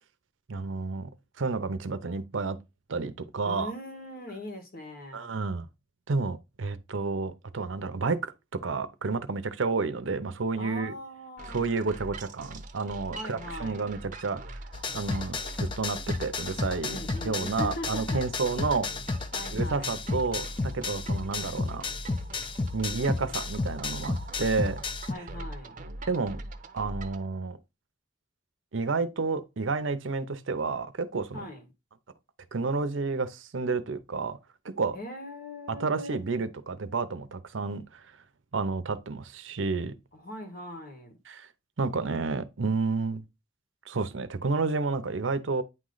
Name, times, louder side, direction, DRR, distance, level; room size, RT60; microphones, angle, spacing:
voice 1, 0.5-1.1 1.4-2.6 2.9-3.7 5.1-5.7 6.1-10.9 11.5-14.4 14.9-17.0 17.2-18.9 19.5-21.9 22.7-24.8 26.1-26.4 26.7-27.6 28.7-31.4 32.5-34.4 34.6-35.0 35.7-38.0 38.5-39.9 41.3-41.5 41.8-43.2 43.9-45.6, right 4 dB, 85° right, 0.7 m, -30 dB
voice 2, 3.4-5.3 10.6-11.7 13.1-13.9 16.8-18.2 19.3-19.9 25.1-25.7 31.3-31.7 34.9-36.2 40.1-41.2, left 1 dB, 50° left, 1.7 m, -40 dB
sound 1, 11.4-27.3, right 2 dB, 40° right, 0.7 m, -43 dB
sound 2, 14.7-25.1, left 3 dB, 25° left, 0.4 m, -33 dB
9.2 x 3.1 x 3.9 m
head